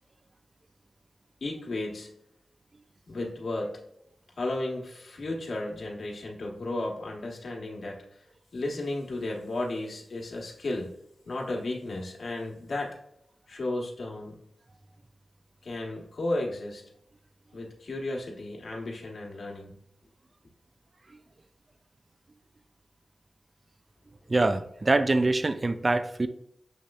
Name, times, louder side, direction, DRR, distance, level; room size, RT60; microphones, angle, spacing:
voice 1, 1.4-2.1 3.1-3.8 4.4-8.0 8.5-10.9 11.2-13.0 13.5-14.4 15.6-16.8 17.5-19.8, left 2 dB, 70° left, -1 dB, 1.1 m, -34 dB
voice 2, 24.3-26.3, right 2 dB, 40° right, 11 dB, 0.3 m, -24 dB
6.8 x 3.1 x 2.3 m, 0.75 s
cardioid pair, 50°, 0 cm